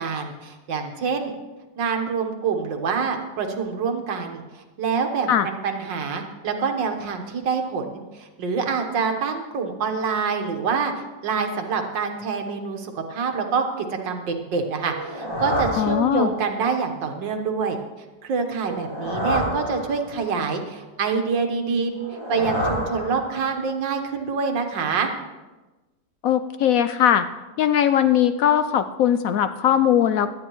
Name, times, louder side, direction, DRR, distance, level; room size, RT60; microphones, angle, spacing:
voice 1, 0.0-1.3 1.8-17.8 18.2-25.1, right 5 dB, 80° right, 4 dB, 1.9 m, -26 dB
sound 1, 14.8-16.6 18.6-20.4 21.9-23.7, equal, 15° left, 3.6 m, -29 dB
voice 2, 15.8-16.3 26.2-27.3 27.6-30.3, left 10 dB, 75° left, 11 dB, 0.8 m, -19 dB
17.5 x 12.0 x 3.1 m, 1.2 s
omnidirectional pair, 2.0 m